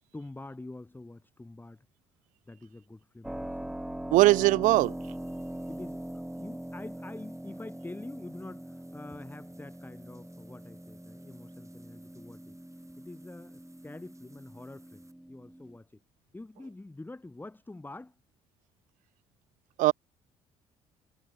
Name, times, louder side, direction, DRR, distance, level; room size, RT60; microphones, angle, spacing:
voice 1, 0.1-1.9 2.5-3.8 4.4-4.5 5.7-16.0 16.3-18.2, left 2 dB, 15° left, 1.9 m, -46 dB
Keyboard (musical), 3.2-15.8, right 1 dB, 5° right, 1.1 m, -42 dB
voice 2, 4.1-4.9 19.8-19.9, right 18 dB, 60° right, 0.4 m, -20 dB
sound 1, 4.6-15.1, right 3 dB, 20° right, 6.5 m, -64 dB
hypercardioid pair, 55°, 15 cm